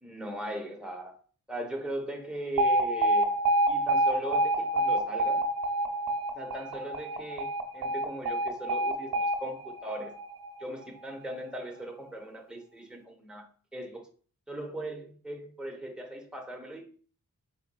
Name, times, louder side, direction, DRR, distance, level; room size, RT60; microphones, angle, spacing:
voice 1, 0.0-1.2 1.5-3.3 3.7-5.5 6.3-10.2 10.6-13.5 13.7-14.1 14.5-16.8, right 1 dB, ahead, 0.8 m, -39 dB
Alarm, 2.6-10.6, right 1 dB, 60° right, 0.7 m, -27 dB
4.2 x 4.0 x 2.3 m
wide cardioid pair, 90°, 37 cm